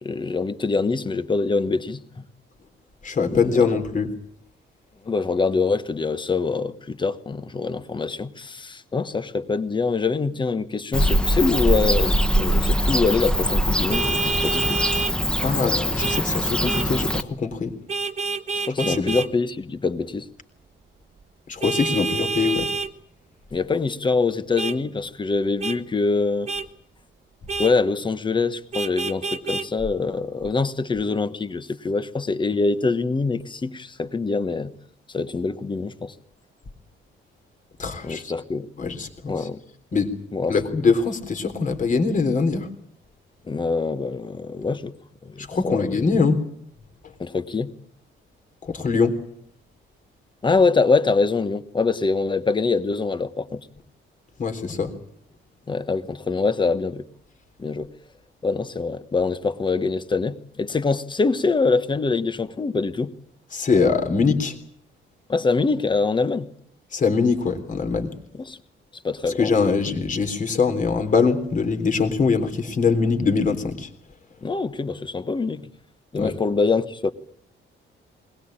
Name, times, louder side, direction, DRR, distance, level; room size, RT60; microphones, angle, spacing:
voice 1, 0.0-2.2 3.3-3.7 5.1-14.8 18.7-20.3 23.5-26.5 27.6-34.7 35.1-36.1 38.0-38.7 39.3-39.6 40.3-40.5 43.5-44.9 45.2-46.0 47.2-47.7 50.4-53.7 55.7-57.0 57.6-57.9 58.4-63.1 65.3-66.5 68.5-68.6 69.0-69.5 74.4-75.7 76.1-77.1, left 4 dB, 25° left, 1.3 m, -24 dB
voice 2, 3.0-4.1 15.4-17.8 18.8-19.2 21.5-22.7 37.8-38.3 38.8-39.5 39.9-40.1 40.5-42.7 45.4-46.4 48.6-49.1 54.4-54.9 63.5-64.6 66.9-68.1 69.3-73.9 76.1-76.3, left 4 dB, 40° left, 3.6 m, -22 dB
Bird / Cricket, 10.9-17.2, equal, 5° left, 1.3 m, -22 dB
Vehicle horn car horn honking, 13.9-15.1 16.0-16.2 16.6-16.9 17.9-19.3 21.6-22.9 24.6-24.8 25.6-25.8 26.5-26.7 27.5-27.7 28.7-29.7, right 4 dB, 35° right, 1.3 m, -27 dB
21.0 x 20.5 x 8.9 m
cardioid pair, 140°, 21 cm